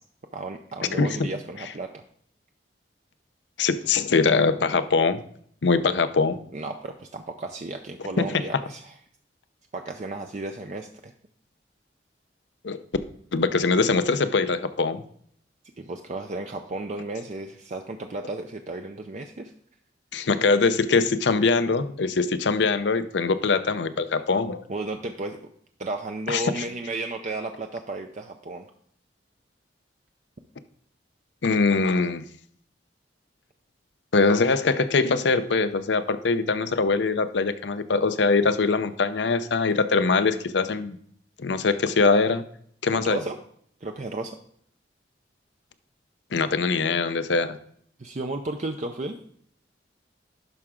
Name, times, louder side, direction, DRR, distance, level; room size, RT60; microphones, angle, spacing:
voice 1, 0.3-2.0 6.5-8.9 9.7-11.1 15.8-19.5 24.7-25.4 25.8-28.7 42.9-43.4 43.8-44.4 48.0-49.2, right 2 dB, 40° right, 4 dB, 0.5 m, -33 dB
voice 2, 1.0-1.3 3.6-5.2 5.6-6.4 8.2-8.4 12.6-12.8 13.3-15.0 20.1-24.6 26.3-26.6 31.4-32.3 34.1-41.0 41.4-42.4 42.8-43.2 46.3-47.6, left 4 dB, 75° left, 11 dB, 0.6 m, -22 dB
11.0 x 5.9 x 3.7 m, 0.64 s
head